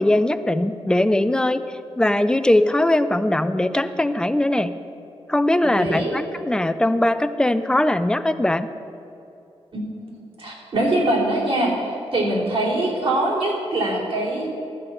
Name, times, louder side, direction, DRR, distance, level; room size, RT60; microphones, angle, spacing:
voice 1, 0.0-1.6 2.0-4.7 5.3-8.7, left 1 dB, 10° left, 11 dB, 0.4 m, -20 dB
voice 2, 5.6-6.2 9.7-14.5, right 1 dB, 60° right, -5 dB, 3.0 m, -23 dB
13.0 x 5.3 x 8.2 m, 2.7 s
wide cardioid pair, 165°, 10 cm